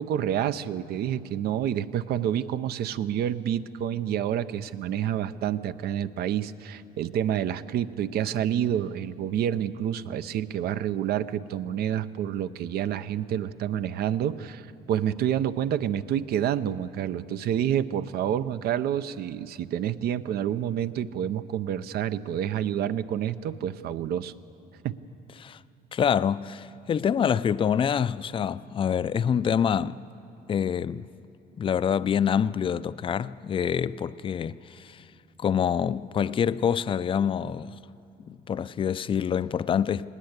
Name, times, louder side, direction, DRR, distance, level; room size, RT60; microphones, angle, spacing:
voice 1, 0.0-24.3 24.8-25.0, right 10 dB, 70° right, 0.7 m, -28 dB
voice 2, 25.9-30.0 30.5-31.1 31.6-35.0 35.4-37.8 38.3-40.1, left 8 dB, 30° left, 0.4 m, -26 dB
19.0 x 19.0 x 8.1 m
cardioid pair, 110°, 17 cm